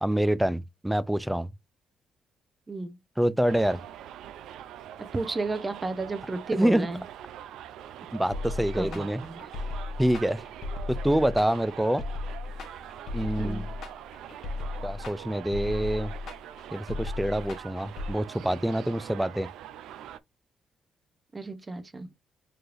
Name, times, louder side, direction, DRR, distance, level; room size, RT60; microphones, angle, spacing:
voice 1, 0.0-1.5 3.2-3.8 6.5-6.9 8.1-9.2 10.0-10.4 10.9-12.0 13.1-13.7 14.8-16.1 16.7-19.5, right 1 dB, 5° right, 0.4 m, -26 dB
voice 2, 2.7-3.0 5.1-7.0 8.7-9.4 13.4-13.7 21.3-22.1, right 3 dB, 25° right, 0.8 m, -33 dB
Subway metro underground, 3.5-20.2, right 11 dB, 85° right, 0.4 m, -44 dB
sound 1, 8.3-18.1, left 3 dB, 65° left, 0.9 m, -36 dB
4.4 x 3.3 x 2.5 m
cardioid pair, 90°, 0 cm